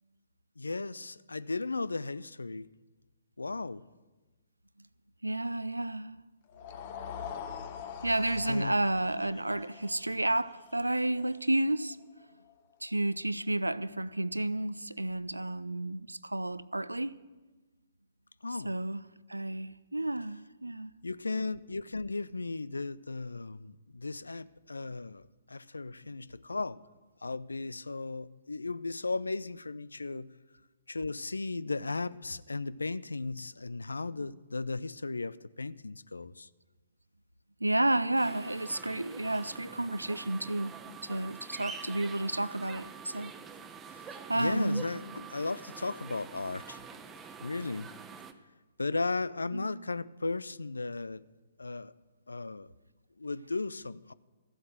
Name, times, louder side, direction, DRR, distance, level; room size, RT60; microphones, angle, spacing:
voice 1, 0.6-2.7 3.4-3.8 8.5-8.8 18.4-18.7 21.0-25.2 25.5-26.8 27.2-30.3 30.9-36.5 43.9-46.8 47.4-47.9 48.8-51.2 51.6-51.9 52.3-52.7 53.2-54.1, left 3 dB, 80° left, 0.4 m, -36 dB
voice 2, 5.2-6.2 8.0-12.0 12.8-17.1 18.6-20.9 34.2-34.3 37.6-40.7 41.0-43.3 44.3-44.8 49.5-49.8, right 1 dB, 90° right, 0.5 m, -31 dB
sound 1, 6.5-12.7, left 7 dB, 40° left, 1.3 m, -44 dB
sound 2, 38.2-48.3, right 6 dB, 15° right, 0.8 m, -46 dB
14.0 x 7.9 x 7.6 m
figure-of-eight pair, 125°, 0 cm